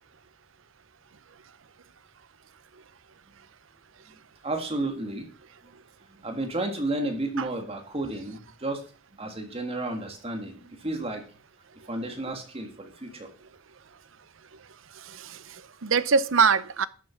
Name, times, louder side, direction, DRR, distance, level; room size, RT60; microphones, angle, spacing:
voice 1, 4.4-5.3 6.2-8.8 9.2-11.2 11.9-13.3, right 2 dB, 30° right, 1.9 m, -32 dB
voice 2, 15.0-16.9, right 5 dB, 80° right, 0.8 m, -24 dB
12.0 x 7.1 x 5.7 m
head